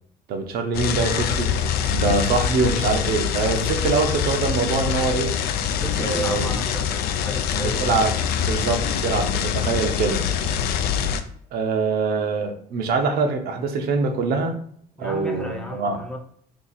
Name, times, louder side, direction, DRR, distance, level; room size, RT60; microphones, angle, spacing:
voice 1, 0.3-1.5 1.9-5.3 6.0-6.5 7.5-8.1 8.5-10.3 11.5-14.5 15.0-16.0, right 4 dB, 65° right, 5 dB, 0.7 m, -24 dB
sound 1, 0.7-11.2, left 8 dB, 65° left, 0.4 m, -24 dB
voice 2, 5.7-6.9 7.2-8.0 15.0-16.2, equal, 5° left, 2 dB, 0.7 m, -33 dB
2.8 x 2.4 x 3.9 m, 0.64 s
supercardioid pair, 90°, 17 cm